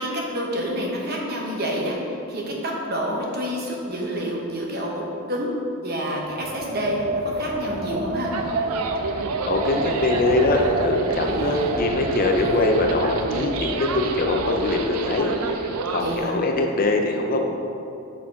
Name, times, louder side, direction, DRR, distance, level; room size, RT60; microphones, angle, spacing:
voice 1, 0.0-5.5 5.8-8.3 16.0-16.4, equal, 45° right, -2 dB, 1.0 m, -28 dB
Wind, 6.3-14.8, right 1 dB, 30° right, 0.3 m, -30 dB
sound 1, 8.3-16.2, right 4 dB, 85° right, 0.5 m, -29 dB
voice 2, 9.4-15.6 15.9-17.4, left 2 dB, 40° left, 2 dB, 0.5 m, -22 dB
5.9 x 4.8 x 4.7 m, 2.7 s
head